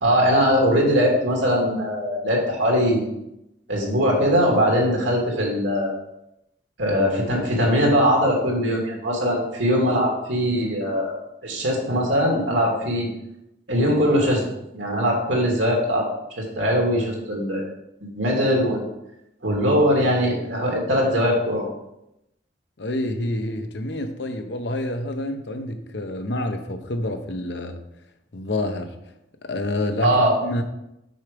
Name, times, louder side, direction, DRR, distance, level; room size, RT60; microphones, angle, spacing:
voice 1, 0.0-3.1 3.7-5.9 6.8-11.1 11.4-13.1 13.7-14.4 14.7-16.1 16.4-17.6 18.0-18.8 19.4-21.7 30.0-30.4, equal, 85° right, -1 dB, 2.2 m, -21 dB
voice 2, 22.8-27.8 28.3-28.9 29.4-30.6, left 1 dB, 65° left, 7 dB, 0.8 m, -28 dB
6.4 x 4.7 x 5.2 m, 0.85 s
head